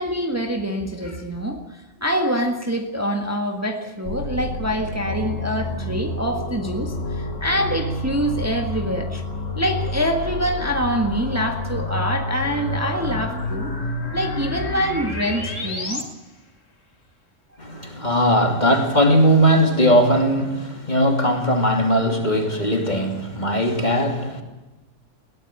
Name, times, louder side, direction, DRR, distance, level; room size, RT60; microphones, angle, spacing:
voice 1, 0.0-9.2 9.5-13.7 14.1-16.1, equal, 10° right, 1.7 m, -25 dB
sound 1, 4.1-16.0, left 1 dB, 90° left, 3.2 m, -29 dB
voice 2, 17.6-24.4, equal, 35° left, 3.1 m, -19 dB
21.5 x 17.5 x 8.9 m
omnidirectional pair, 1.3 m